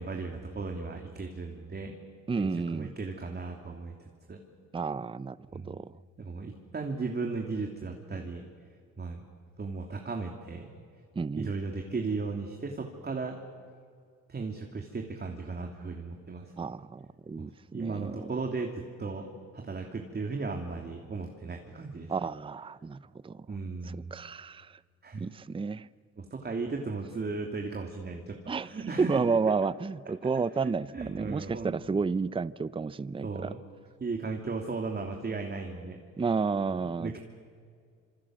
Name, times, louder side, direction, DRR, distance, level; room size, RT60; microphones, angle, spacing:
voice 1, 0.0-2.0 2.4-3.9 4.3-4.4 5.5-5.8 6.2-8.4 9.0-9.2 9.6-10.7 11.4-13.4 14.3-16.5 17.4-22.1 23.5-24.1 25.0-25.3 26.2-29.4 30.6-32.0 33.2-33.6 34.0-36.0 36.7-37.2, right 4 dB, 35° right, 2 dB, 3.0 m, -36 dB
voice 2, 2.3-2.9 4.7-5.9 11.2-11.5 16.6-18.3 22.1-23.5 24.1-24.8 25.2-25.9 28.5-33.5 36.2-37.2, right 4 dB, 15° right, 18 dB, 0.6 m, -31 dB
27.0 x 26.5 x 7.8 m, 2.2 s
cardioid pair, 90°, 30 cm